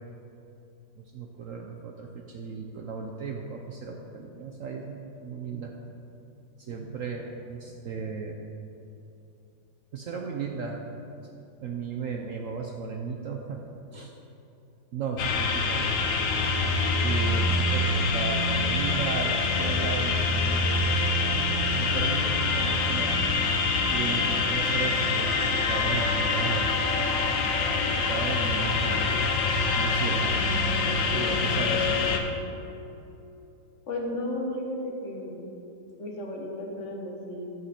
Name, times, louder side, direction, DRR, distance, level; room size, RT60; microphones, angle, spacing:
voice 1, 1.1-5.7 6.7-8.4 9.9-10.8 11.6-13.6 13.9-14.1 14.9-16.2 17.0-21.1 21.7-23.2 23.9-26.7 28.1-29.1 29.7-30.4 31.1-32.2, right 5 dB, 70° right, 1 dB, 0.8 m, -35 dB
sound 1, 15.2-32.2, left 3 dB, 75° left, 1.4 m, -25 dB
voice 2, 33.9-35.5 36.0-37.5, left 1 dB, 45° left, 0 dB, 1.4 m, -34 dB
14.0 x 5.5 x 4.3 m, 2.8 s
omnidirectional pair, 2.0 m